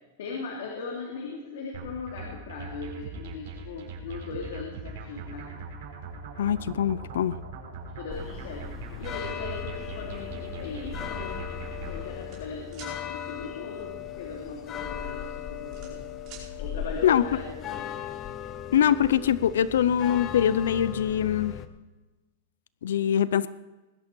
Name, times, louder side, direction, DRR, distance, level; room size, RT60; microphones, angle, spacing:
voice 1, 0.2-5.5 8.0-8.7 9.0-11.5 11.8-16.0 16.6-17.9, left 4 dB, 65° left, -1 dB, 3.0 m, -38 dB
sound 1, 1.7-12.1, right 4 dB, 50° right, 4.9 m, -40 dB
voice 2, 6.4-7.4 17.0-17.2 18.7-21.5 22.8-23.5, left 9 dB, 90° left, 17 dB, 0.6 m, -23 dB
sound 2, 8.1-21.7, left 9 dB, 20° left, 0.8 m, -37 dB
sound 3, 12.3-12.9 14.6-14.8 15.2-16.5, right 6 dB, 30° right, 5.1 m, -46 dB
20.5 x 11.5 x 4.6 m, 1.1 s
supercardioid pair, 175°, 0 cm